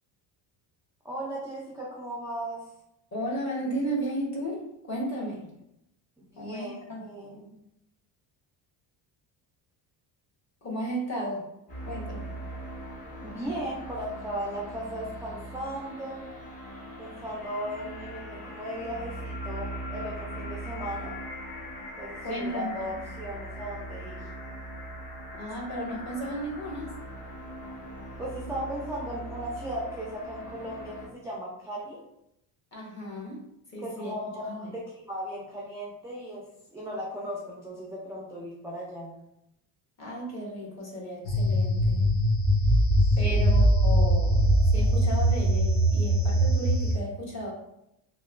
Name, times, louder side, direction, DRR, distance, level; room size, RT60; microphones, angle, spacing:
voice 1, 1.0-2.6 6.2-7.4 13.2-16.2 17.0-21.2 22.0-24.3 28.2-32.0 33.8-36.4 36.7-39.1 43.2-43.5, right 1 dB, 5° right, -4 dB, 0.3 m, -36 dB
voice 2, 3.1-5.5 6.3-7.1 10.6-11.5 11.8-12.3 22.2-22.9 25.3-26.9 32.7-33.4 33.7-34.2 34.4-34.7 40.0-42.1 43.1-47.5, equal, 35° left, -4 dB, 1.1 m, -34 dB
sound 1, 11.7-31.1, right 1 dB, 20° left, 0.7 m, -40 dB
sound 2, 41.2-46.9, right 1 dB, 85° left, 1.2 m, -22 dB
2.9 x 2.1 x 2.4 m, 0.82 s
cardioid pair, 100°, 47 cm